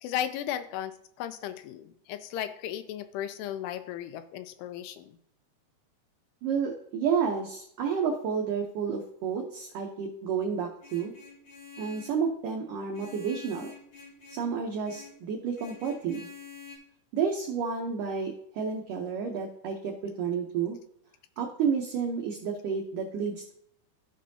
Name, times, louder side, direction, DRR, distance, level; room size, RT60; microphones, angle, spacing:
voice 1, 0.0-5.2, left 11 dB, 85° left, 10 dB, 2.5 m, -35 dB
voice 2, 6.4-11.1 11.8-13.7 14.3-16.3 17.1-20.8 21.4-23.5, right 6 dB, 90° right, 1 dB, 1.8 m, -30 dB
Vehicle horn car horn honking, 10.8-12.2 12.9-14.5 14.8-15.2 15.5-16.8, left 5 dB, 50° left, 1.6 m, -47 dB
14.5 x 5.2 x 2.7 m, 0.70 s
omnidirectional pair, 4.9 m